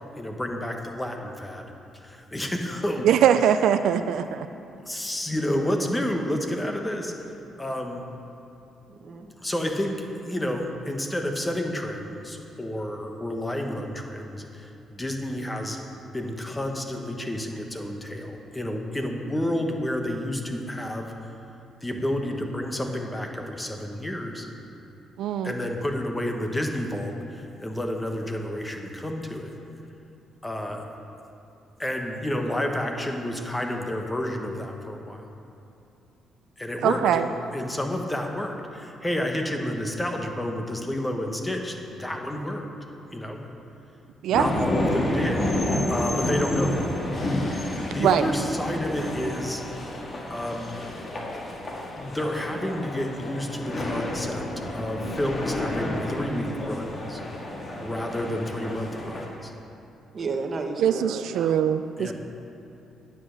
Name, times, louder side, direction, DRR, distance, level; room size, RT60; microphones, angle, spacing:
voice 1, 0.2-1.7 2.0-3.1 4.8-7.1 7.6-8.0 9.4-15.8 16.1-21.1 21.8-24.5 25.4-29.5 30.4-30.8 31.8-35.2 36.6-37.3 37.5-42.7 43.1-43.4 44.3-46.9 47.9-49.6 50.3-50.8 52.0-54.4 54.7-57.2 57.8-59.5 62.0-62.1, left 1 dB, 15° left, 3 dB, 1.2 m, -30 dB
voice 2, 3.0-4.5 25.2-25.5 36.8-37.3 44.2-44.5 48.0-48.3 55.1-55.2 60.8-62.1, right 9 dB, 80° right, 10 dB, 0.3 m, -22 dB
voice 3, 8.9-9.3 58.2-58.8 60.1-61.6, right 3 dB, 45° right, 4 dB, 1.1 m, -33 dB
sound 1, 44.3-59.3, left 1 dB, 35° left, 1.8 m, -30 dB
9.4 x 8.2 x 6.4 m, 2.8 s
cardioid pair, 90°, 0 cm